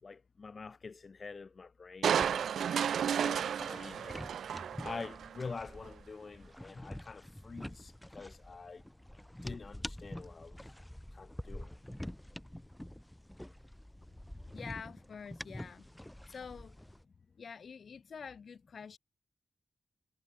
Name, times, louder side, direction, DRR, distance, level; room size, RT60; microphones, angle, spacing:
voice 1, 0.0-8.8 9.4-10.7 11.1-11.7, left 4 dB, 40° left, 2.8 m, -47 dB
Crushing, 2.0-5.4 5.8-5.9, right 8 dB, 85° right, 0.9 m, -32 dB
sound 1, 2.1-17.0, left 1 dB, 5° left, 7.9 m, -47 dB
voice 2, 14.5-15.9 16.3-16.8 17.3-19.0, left 6 dB, 55° left, 5.0 m, -47 dB
wide cardioid pair, 120°, 0 cm